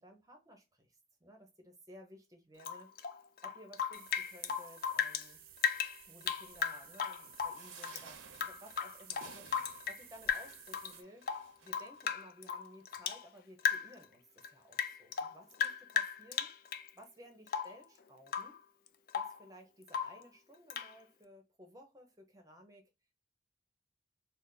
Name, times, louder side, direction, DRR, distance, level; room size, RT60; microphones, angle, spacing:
voice 1, 0.0-2.9 3.4-5.4 6.0-11.3 11.6-14.2 14.5-16.5 16.9-18.6 19.1-22.9, equal, 20° right, 0.7 m, -57 dB
Rain / Drip, 2.6-5.3 5.6-8.0 8.3-10.0 10.3-10.9 11.2-13.2 13.6-14.1 14.4-16.9 17.5-17.8 18.3-18.6 18.9-19.4 19.9-20.2 20.7-20.9, left 7 dB, 50° left, 0.3 m, -36 dB
sound 1, 3.9-11.0, right 9 dB, 50° right, 0.5 m, -56 dB
sound 2, 7.5-12.1 12.7-12.8 13.1-13.2, right 6 dB, 90° right, 0.6 m, -56 dB
3.4 x 2.0 x 3.9 m
head